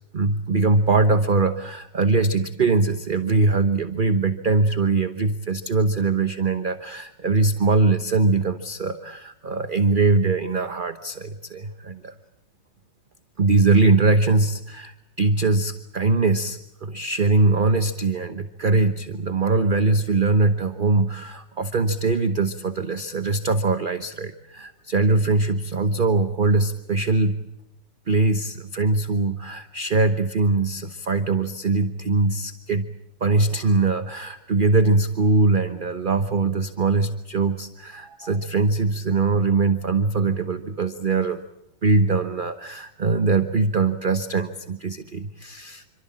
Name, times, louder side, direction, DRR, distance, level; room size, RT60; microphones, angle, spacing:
voice 1, 0.1-12.1 13.4-27.4 28.1-32.9 33.2-41.4 41.8-45.8, right 3 dB, 35° right, 10 dB, 1.1 m, -22 dB
28.0 x 25.0 x 7.5 m, 0.84 s
omnidirectional pair, 1.9 m